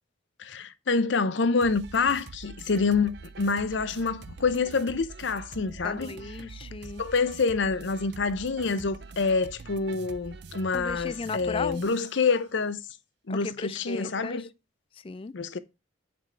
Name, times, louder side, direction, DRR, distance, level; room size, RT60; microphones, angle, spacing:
voice 1, 0.4-6.1 7.0-12.8 13.3-14.5 15.3-15.6, left 4 dB, 65° left, 0.6 m, -27 dB
sound 1, 1.6-12.2, right 4 dB, 55° right, 0.5 m, -45 dB
voice 2, 5.8-7.0 10.7-11.8 13.3-14.5 14.9-15.3, left 4 dB, 25° left, 0.3 m, -36 dB
6.0 x 4.7 x 5.6 m
head